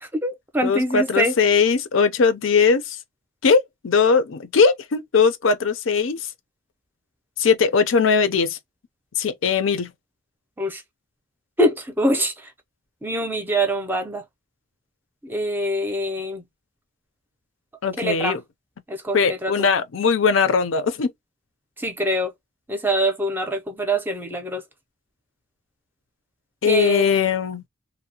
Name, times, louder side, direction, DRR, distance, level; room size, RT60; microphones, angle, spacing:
voice 1, 0.0-1.3 10.6-10.8 11.6-12.5 13.0-14.2 15.2-16.4 18.0-18.4 18.9-19.7 21.8-22.3 22.7-24.6 26.6-27.1, right 1 dB, 10° right, 0.5 m, -24 dB
voice 2, 0.6-3.0 3.4-6.3 7.4-8.6 9.2-9.9 17.8-18.4 19.1-21.1 26.6-27.6, left 5 dB, 90° left, 0.5 m, -20 dB
2.7 x 2.0 x 2.7 m
head